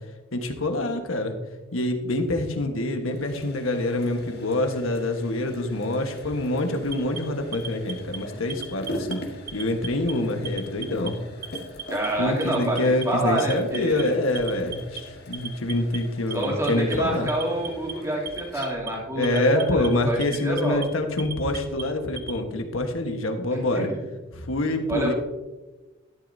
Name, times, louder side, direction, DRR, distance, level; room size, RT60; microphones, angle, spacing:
voice 1, 0.3-1.3 1.7-9.2 9.5-11.2 12.2-17.3 19.1-23.9 24.3-25.1, left 1 dB, 85° left, 5 dB, 1.3 m, -26 dB
sound 1, 3.0-20.7, equal, 50° left, 1.6 m, -42 dB
Alarm, 6.9-8.2 8.5-9.1 9.5-10.1 10.5-11.1 11.4-12.1 12.4-13.0 13.4-14.0 14.4-15.0 15.3-16.0 16.3-17.0 17.3-17.9 18.3-18.9 19.2-19.9 20.2-20.9 21.2-22.4, right 8 dB, 45° right, 0.9 m, -37 dB
voice 2, 11.9-14.2 16.3-20.8 23.7-24.0 24.9-25.1, right 1 dB, 15° right, -3 dB, 2.7 m, -27 dB
12.5 x 10.5 x 2.7 m, 1.1 s
head